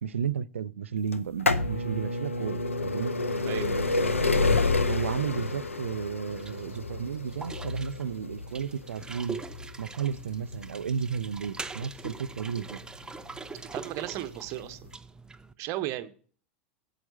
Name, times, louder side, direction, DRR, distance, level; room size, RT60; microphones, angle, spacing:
voice 1, 0.0-3.1 4.9-9.4 9.8-12.8, right 7 dB, 75° right, 0.5 m, -33 dB
sound 1, 1.1-12.8 13.6-13.7 14.6-14.7 14.9-15.0, left 3 dB, 85° left, 0.7 m, -29 dB
voice 2, 3.5-3.9 13.7-14.9 15.6-16.1, right 14 dB, 45° right, 1.0 m, -35 dB
sound 2, 6.3-15.5, right 4 dB, 10° right, 0.6 m, -43 dB
8.9 x 8.2 x 4.1 m
figure-of-eight pair, 80°, 7 cm